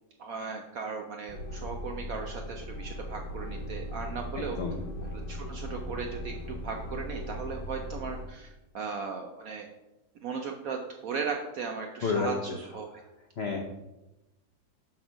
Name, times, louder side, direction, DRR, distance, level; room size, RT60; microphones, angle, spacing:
voice 1, 0.2-4.6 5.0-9.7 10.2-13.0, right 5 dB, 70° right, 3 dB, 0.8 m, -37 dB
sound 1, 1.3-8.3, equal, 60° left, 1.2 m, -38 dB
voice 2, 4.4-4.8 12.0-12.3 13.4-13.6, left 5 dB, 75° left, 2 dB, 0.5 m, -30 dB
7.2 x 3.2 x 6.1 m, 0.98 s
omnidirectional pair, 2.1 m